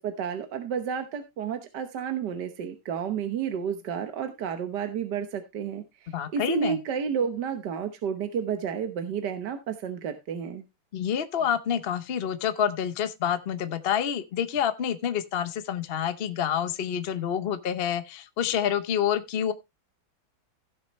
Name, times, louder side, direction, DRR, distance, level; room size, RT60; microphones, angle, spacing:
voice 1, 0.0-10.6, right 7 dB, 60° right, 1.5 m, -31 dB
voice 2, 6.1-6.8 10.9-19.5, left 9 dB, 60° left, 0.6 m, -28 dB
16.0 x 6.5 x 3.1 m
omnidirectional pair, 2.2 m